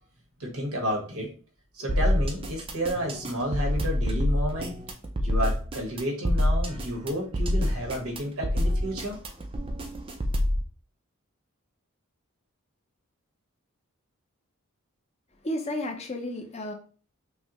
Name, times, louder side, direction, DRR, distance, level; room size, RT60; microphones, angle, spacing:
voice 1, 0.4-1.3 1.7-4.8 5.2-9.2, equal, 80° right, 0 dB, 1.4 m, -31 dB
sound 1, 1.9-10.6, left 1 dB, 25° right, 0.4 m, -26 dB
voice 2, 15.4-16.7, left 1 dB, 30° left, 3 dB, 0.6 m, -32 dB
5.5 x 2.1 x 3.0 m, 0.40 s
head